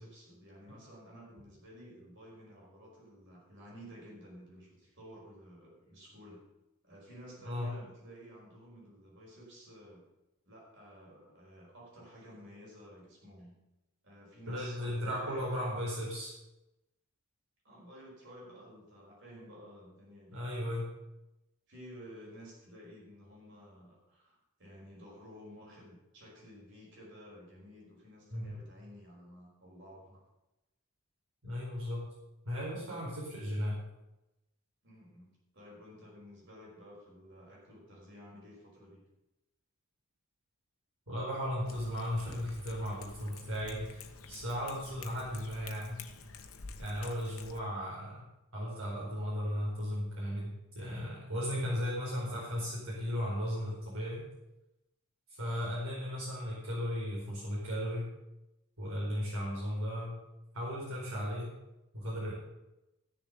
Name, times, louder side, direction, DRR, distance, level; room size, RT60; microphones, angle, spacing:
voice 1, 0.0-6.4 6.8-10.0 10.5-13.5 14.0-15.8 17.6-20.4 21.7-30.2 34.8-39.0, equal, 55° right, -3 dB, 5.5 m, -53 dB
voice 2, 14.5-16.3 20.3-20.9 28.3-28.6 31.4-32.1 32.4-33.8 41.1-46.0 46.8-48.2 48.5-54.3 55.4-58.1 58.8-60.1 60.5-61.5 61.9-62.3, equal, 70° right, -6 dB, 4.6 m, -36 dB
Cat, 41.7-47.6, left 4 dB, 70° left, 1.1 m, -49 dB
14.5 x 7.0 x 6.9 m, 0.94 s
head